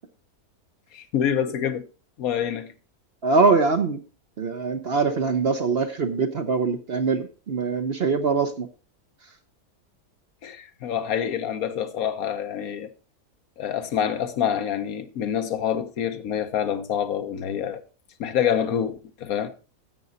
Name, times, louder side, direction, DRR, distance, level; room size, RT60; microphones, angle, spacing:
voice 1, 0.9-1.8 2.2-2.7 10.4-12.9 13.6-17.8 18.2-19.5, left 9 dB, 70° left, 1.3 m, -26 dB
voice 2, 3.2-4.0 4.4-8.7, right 4 dB, 50° right, 0.9 m, -23 dB
11.0 x 7.6 x 4.0 m
omnidirectional pair, 1.6 m